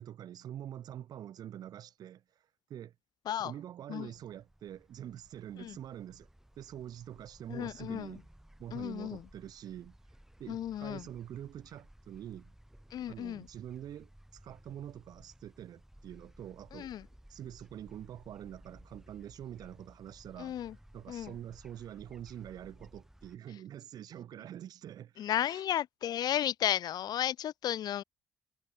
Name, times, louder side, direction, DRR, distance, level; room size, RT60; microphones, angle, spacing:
voice 1, 0.0-2.2 2.7-2.9 3.4-6.3 6.6-8.2 8.6-10.0 10.4-12.5 13.1-16.9 17.3-20.6 20.9-25.6, right 11 dB, 65° right, 0.5 m, -45 dB
sound 1, 3.9-23.4, right 1 dB, 5° right, 4.5 m, -58 dB
voice 2, 7.5-8.2 8.7-9.3 10.5-11.1 12.9-13.5 16.7-17.1 20.4-20.8 21.1-21.4 25.2-28.0, left 11 dB, 70° left, 0.9 m, -34 dB
supercardioid pair, 55°, 7 cm